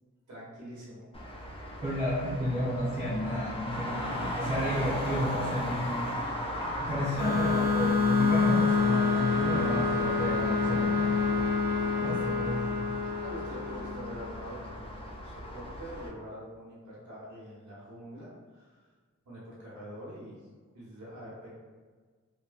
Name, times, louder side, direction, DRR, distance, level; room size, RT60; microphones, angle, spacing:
voice 1, 0.3-1.0 13.2-18.8 19.2-20.4 20.7-21.5, equal, 75° right, -8 dB, 1.2 m, -45 dB
Traffic noise roadway noise, 1.1-16.1, equal, 20° left, 0.4 m, -37 dB
voice 2, 1.8-6.1 6.8-11.1 12.0-12.6, equal, 10° right, -11 dB, 1.0 m, -32 dB
sound 1, 7.2-14.5, left 4 dB, 40° left, 1.0 m, -27 dB
3.0 x 2.1 x 2.5 m, 1.4 s
cardioid pair, 65°, 30 cm